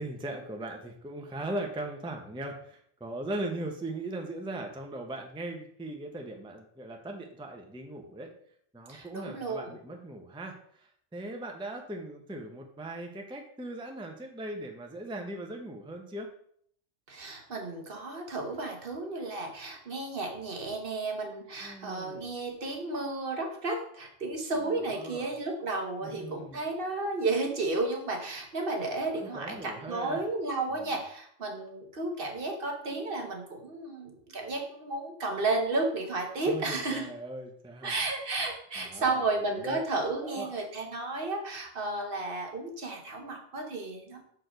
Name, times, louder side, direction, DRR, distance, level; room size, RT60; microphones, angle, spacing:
voice 1, 0.0-8.3 8.7-16.3 21.6-22.3 24.5-25.3 26.0-26.6 29.1-30.2 30.8-30.9 36.4-37.9 38.8-39.9 40.2-40.5, right 1 dB, 5° right, 3 dB, 0.7 m, -39 dB
voice 2, 8.9-9.7 17.1-37.1 37.8-44.2, right 2 dB, 55° right, 2 dB, 1.3 m, -33 dB
6.2 x 4.7 x 5.1 m, 0.65 s
omnidirectional pair, 1.2 m